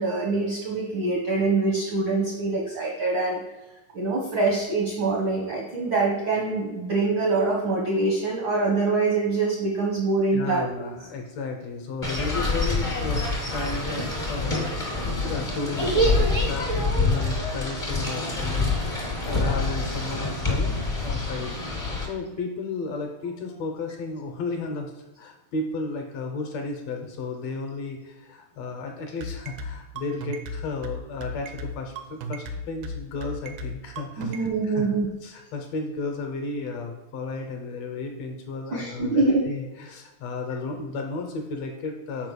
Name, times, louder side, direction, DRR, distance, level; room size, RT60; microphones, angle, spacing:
voice 1, 0.0-3.4 3.9-10.6 34.2-35.1 38.7-39.4, right 3 dB, 70° right, -1 dB, 1.1 m, -24 dB
voice 2, 10.3-13.2 13.5-14.8 15.2-21.6 22.0-24.9 25.2-34.9 35.2-42.3, left 3 dB, 70° left, 3 dB, 1.8 m, -33 dB
sound 1, 12.0-22.1, left 2 dB, 35° left, 0.5 m, -26 dB
sound 2, 29.2-34.5, equal, 85° right, 2.3 m, -34 dB
5.2 x 4.7 x 6.3 m, 1.1 s
omnidirectional pair, 3.5 m